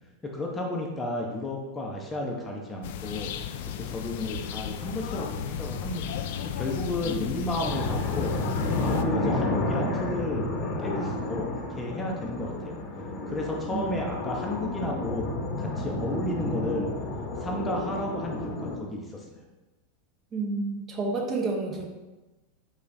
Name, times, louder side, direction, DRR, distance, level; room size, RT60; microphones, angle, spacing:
voice 1, 0.2-3.3 3.7-6.2 6.6-8.4 8.8-10.5 10.8-12.8 13.3-15.3 15.6-16.9 17.4-19.4, left 1 dB, 15° left, 0 dB, 0.7 m, -32 dB
sound 1, 2.8-9.0, left 9 dB, 70° left, 0.3 m, -34 dB
sound 2, 7.6-18.8, left 2 dB, 35° left, 0.9 m, -31 dB
voice 2, 20.3-21.8, right 3 dB, 30° right, 0 dB, 0.9 m, -30 dB
5.4 x 2.4 x 4.0 m, 1.1 s
hypercardioid pair, 120°, 0 cm